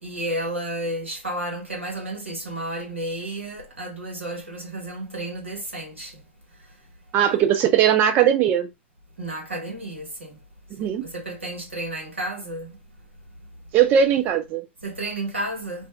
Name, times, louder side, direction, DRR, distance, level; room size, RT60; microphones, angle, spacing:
voice 1, 0.0-6.2 9.2-10.4 10.8-12.8 14.8-15.9, right 1 dB, 85° right, 1.3 m, -32 dB
voice 2, 7.1-8.7 10.8-11.1 13.7-14.7, right 9 dB, 30° right, 0.3 m, -19 dB
2.6 x 2.1 x 3.4 m
figure-of-eight pair, 100°, 6 cm